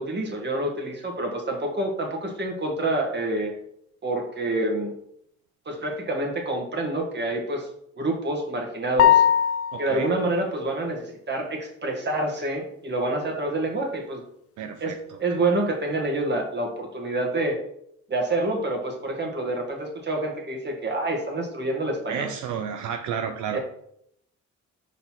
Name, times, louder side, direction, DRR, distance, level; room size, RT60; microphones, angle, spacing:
voice 1, 0.0-3.5 4.0-4.9 5.7-7.7 8.0-9.2 9.8-14.2 14.8-14.9 15.2-17.6 18.1-22.3 23.5-23.6, right 2 dB, 35° right, 1 dB, 1.8 m, -27 dB
sound 1, 9.0-10.0, left 10 dB, 50° left, 0.5 m, -19 dB
voice 2, 9.7-10.1 14.6-15.2 22.1-23.6, right 8 dB, 80° right, 6 dB, 0.6 m, -31 dB
5.7 x 4.0 x 4.4 m, 0.72 s
cardioid pair, 90°, 30 cm